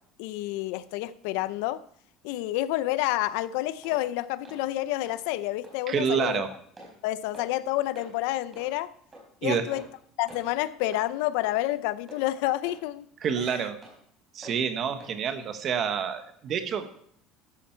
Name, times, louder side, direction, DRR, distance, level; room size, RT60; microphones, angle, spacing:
voice 1, 0.2-1.8 2.2-6.4 7.0-8.9 9.4-9.9 10.2-13.1 13.4-13.6, left 15 dB, 75° left, 16 dB, 0.6 m, -29 dB
sound 1, 3.8-4.0 4.4-4.6 5.1-5.2 5.6-5.8 6.2-6.4 6.8-6.9 7.3-7.5 8.0-8.1 8.5-8.7 9.1-9.2 9.7-10.0 10.3-10.5 10.8-11.0 11.4-11.6 12.1-12.2 12.6-12.8 13.2-13.4 13.8-14.0 14.4-14.6 15.0-15.1 15.6-15.7, right 1 dB, 15° right, 4.7 m, -46 dB
voice 2, 5.9-6.5 9.4-9.6 13.2-13.8 14.3-16.9, right 7 dB, 35° right, 8 dB, 1.2 m, -28 dB
13.5 x 12.0 x 4.5 m, 0.64 s
cardioid pair, 170°, 0 cm